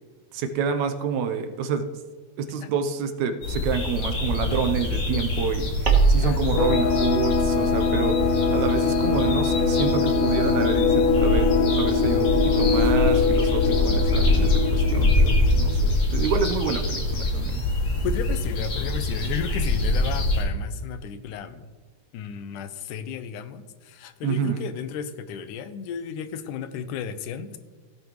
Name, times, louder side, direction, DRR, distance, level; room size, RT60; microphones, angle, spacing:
voice 1, 0.3-1.8 2.4-11.5 11.7-17.0 17.3-17.6 24.2-24.7, right 6 dB, 75° right, 7 dB, 2.1 m, -28 dB
sound 1, 3.4-20.4, left 2 dB, 45° left, 2.6 m, -24 dB
sound 2, 5.8-10.7, right 4 dB, 60° right, 0.8 m, -27 dB
voice 2, 6.2-6.6 18.0-21.7 22.1-27.6, left 7 dB, 85° left, 11 dB, 2.2 m, -34 dB
sound 3, 6.6-15.9, left 5 dB, 70° left, 1.5 m, -23 dB
16.5 x 8.7 x 3.1 m, 1.4 s
omnidirectional pair, 3.5 m